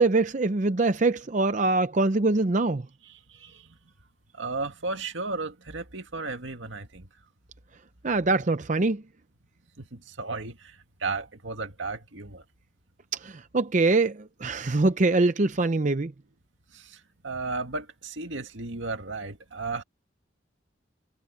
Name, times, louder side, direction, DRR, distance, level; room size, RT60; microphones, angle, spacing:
voice 1, 0.0-2.8 8.0-9.0 13.2-16.1, right 3 dB, 40° right, 0.6 m, -23 dB
voice 2, 3.0-3.8 4.3-7.1 9.8-12.4 16.7-19.8, right 3 dB, 85° right, 2.0 m, -35 dB
head